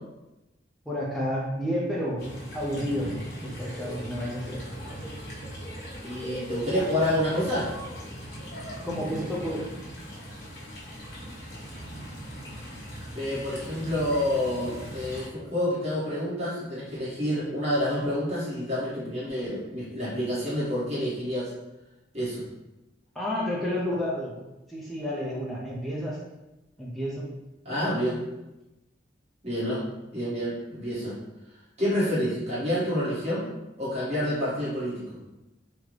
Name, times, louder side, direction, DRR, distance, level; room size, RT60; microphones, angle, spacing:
voice 1, 0.9-2.3 2.5-3.1 3.4-4.6 8.8-9.7 23.2-24.4 24.7-26.2 26.8-27.2, equal, ahead, -6 dB, 0.4 m, -30 dB
sound 1, 2.2-15.3, equal, 60° left, 1.0 m, -39 dB
voice 2, 6.0-7.7 13.1-21.5 22.1-22.5 27.6-28.2 29.4-29.8 30.1-31.2 31.8-33.5 33.8-35.1, left 1 dB, 35° right, -10 dB, 1.4 m, -28 dB
3.5 x 2.1 x 3.1 m, 0.99 s
head